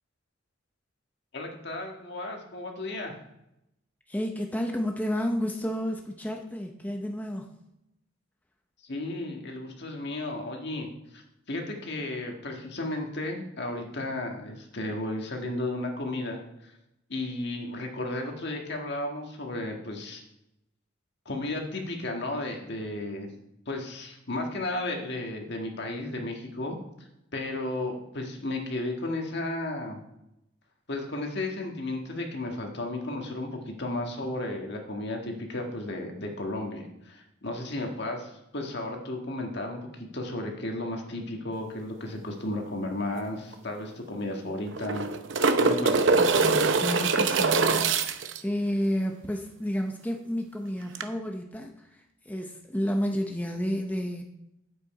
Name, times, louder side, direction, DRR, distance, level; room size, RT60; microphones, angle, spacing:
voice 1, 1.3-3.1 8.8-10.9 11.1-11.2 11.5-16.7 17.1-20.2 21.2-23.3 23.6-26.8 27.3-30.0 30.9-45.1 45.6-46.2, left 2 dB, 60° left, 2 dB, 1.7 m, -34 dB
voice 2, 4.1-7.5 46.2-54.2, equal, 10° left, 2 dB, 0.7 m, -31 dB
sound 1, 43.2-43.3 43.5-43.6 44.7-48.4 51.0-51.1, right 4 dB, 65° right, 0.7 m, -23 dB
9.0 x 8.0 x 4.8 m, 0.86 s
head